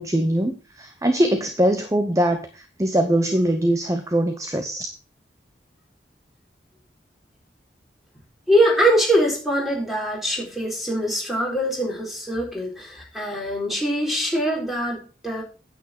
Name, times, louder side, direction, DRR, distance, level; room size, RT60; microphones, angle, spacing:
voice 1, 0.0-4.9, right 1 dB, 15° right, 8 dB, 0.8 m, -22 dB
voice 2, 8.5-15.4, equal, ahead, -1 dB, 4.2 m, -23 dB
9.3 x 8.4 x 4.3 m, 0.34 s
head